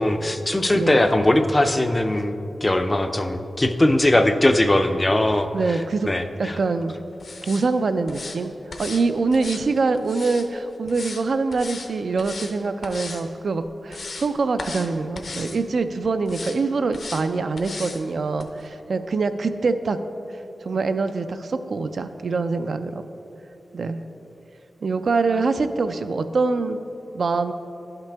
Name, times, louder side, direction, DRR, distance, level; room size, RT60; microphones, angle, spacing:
voice 1, 0.0-6.6, left 1 dB, 20° left, 7 dB, 0.4 m, -20 dB
voice 2, 5.5-6.1 6.4-7.0 7.4-8.5 8.8-20.0 20.6-23.0 23.7-24.0 24.8-26.8 27.1-27.5, right 4 dB, 60° right, 9 dB, 0.3 m, -24 dB
sound 1, 7.2-7.7 8.1-8.4 8.7-9.0 9.3-10.5 10.9-11.2 11.5-11.9 12.2-12.5 12.8-13.2 13.6-14.3 14.6-14.9 15.2-15.6 16.3-16.6 16.9-17.2 17.6-18.0 18.4-18.5, left 3 dB, 55° left, 0.6 m, -36 dB
11.0 x 5.8 x 3.4 m, 2.8 s
wide cardioid pair, 125°, 0 cm